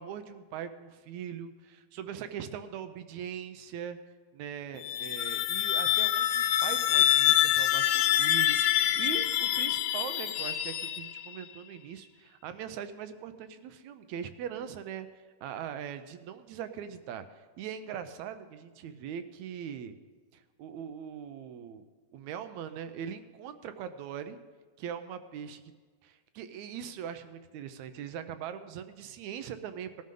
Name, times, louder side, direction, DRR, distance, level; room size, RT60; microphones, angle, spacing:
voice 1, 0.0-4.0 4.3-15.1 15.4-17.2 17.6-19.9 20.3-21.9 22.1-24.4 24.8-25.6 26.0-30.0, right 8 dB, 75° right, 10 dB, 1.9 m, -41 dB
sound 1, 4.7-11.4, left 12 dB, 90° left, 1.4 m, -26 dB
19.0 x 12.5 x 3.8 m, 1.4 s
omnidirectional pair, 3.6 m